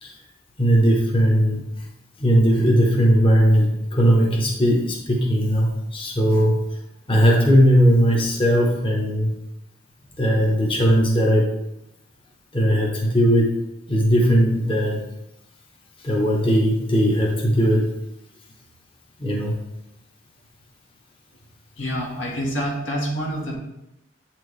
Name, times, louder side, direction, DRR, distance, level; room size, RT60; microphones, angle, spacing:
voice 1, 0.6-1.6 2.2-6.6 7.1-9.3 10.2-11.5 12.5-13.6 13.9-15.0 16.0-17.9 19.2-19.5, equal, 30° left, -1 dB, 0.9 m, -18 dB
voice 2, 21.8-23.6, equal, 80° left, -2 dB, 1.6 m, -27 dB
7.9 x 4.4 x 3.2 m, 0.88 s
head